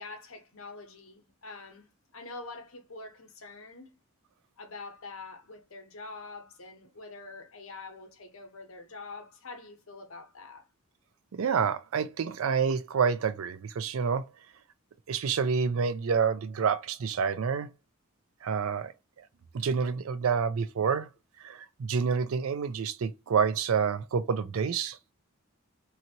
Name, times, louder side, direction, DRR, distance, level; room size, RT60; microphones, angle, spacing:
voice 1, 0.0-3.9 4.6-10.7, left 3 dB, 70° left, 0.9 m, -45 dB
voice 2, 11.3-14.3 15.1-17.7 18.4-18.9 19.5-21.1 21.4-25.0, right 6 dB, 70° right, 0.4 m, -28 dB
2.8 x 2.6 x 2.8 m
head